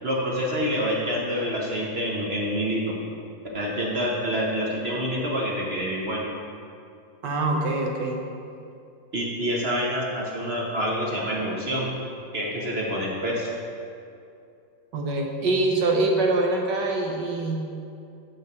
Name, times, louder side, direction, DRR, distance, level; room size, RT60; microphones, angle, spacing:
voice 1, 0.0-2.9 3.5-6.3 9.1-11.9 12.3-13.5, equal, 45° right, -3 dB, 0.8 m, -27 dB
voice 2, 7.2-8.2 14.9-17.7, right 2 dB, 65° right, 1 dB, 1.4 m, -24 dB
6.4 x 5.3 x 6.6 m, 2.5 s
omnidirectional pair, 2.1 m